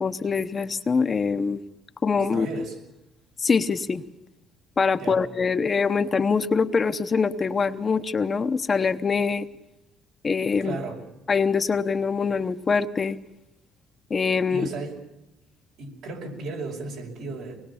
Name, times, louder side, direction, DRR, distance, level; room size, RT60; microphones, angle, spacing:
voice 1, 0.0-1.6 2.0-2.5 3.4-4.0 4.8-9.5 10.2-10.8 11.3-13.2 14.1-14.7, left 5 dB, 30° left, 8 dB, 0.9 m, -24 dB
voice 2, 2.3-2.8 5.0-5.3 10.6-11.0 14.5-15.0 15.8-17.6, right 3 dB, 75° right, 1 dB, 5.6 m, -34 dB
24.5 x 20.5 x 7.1 m, 0.91 s
cardioid pair, 115°, 0 cm